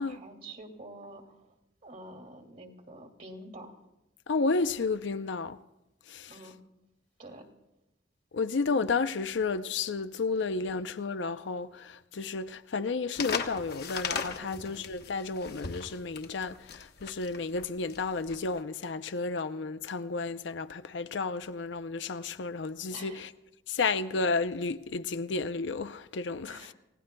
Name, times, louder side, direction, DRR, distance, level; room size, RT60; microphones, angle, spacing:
voice 1, 0.0-1.4 1.8-3.7 6.3-6.5 7.2-7.4 14.4-14.8 22.9-23.2 26.5-26.7, right 1 dB, 50° right, 2.3 m, -47 dB
voice 2, 4.3-5.6 6.1-6.5 8.3-23.3 23.7-26.7, left 4 dB, 70° left, 0.5 m, -32 dB
sound 1, 13.1-18.6, left 5 dB, 55° left, 1.0 m, -37 dB
29.5 x 16.5 x 2.3 m
head